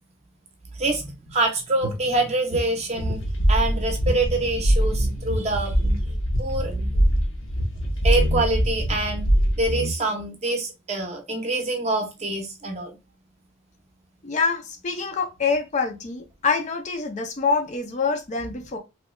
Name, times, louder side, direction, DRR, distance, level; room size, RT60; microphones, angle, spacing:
voice 1, 0.8-3.2 3.5-5.7 6.4-6.7 8.0-9.3 9.6-13.0, right 2 dB, 30° right, 0.6 m, -25 dB
sound 1, 1.8-4.3 4.5-4.6 4.9-5.2 5.8-6.2 6.6-7.1 8.1-8.5 9.3-9.4 9.6-10.3, equal, 85° right, 0.6 m, -30 dB
sound 2, 3.0-9.7, equal, 65° left, 0.7 m, -23 dB
voice 2, 14.2-18.8, left 4 dB, 35° left, 0.4 m, -25 dB
3.0 x 2.2 x 3.0 m
head